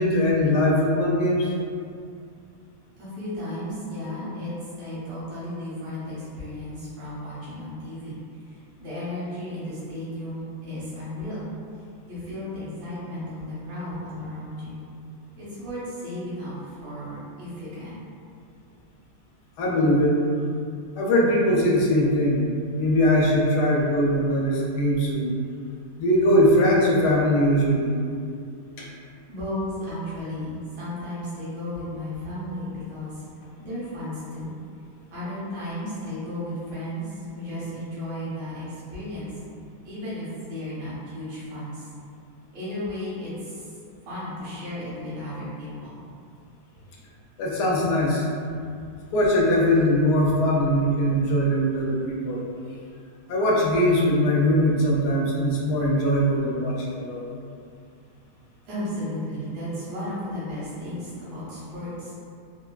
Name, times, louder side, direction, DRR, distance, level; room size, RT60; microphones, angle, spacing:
voice 1, 0.0-1.5 19.6-20.2 21.0-22.5 22.7-25.3 26.0-27.9 28.8-28.9 47.4-48.2 49.1-52.4 53.3-57.2, equal, 85° left, -3 dB, 1.2 m, -21 dB
voice 2, 3.0-8.1 8.5-11.5 12.1-14.8 15.4-18.0 29.3-33.2 33.6-34.5 35.1-39.4 39.8-41.9 42.5-43.7 44.0-46.0 58.7-62.1, left 1 dB, 75° right, -10 dB, 1.5 m, -34 dB
3.4 x 2.3 x 2.3 m, 2.4 s
omnidirectional pair, 1.7 m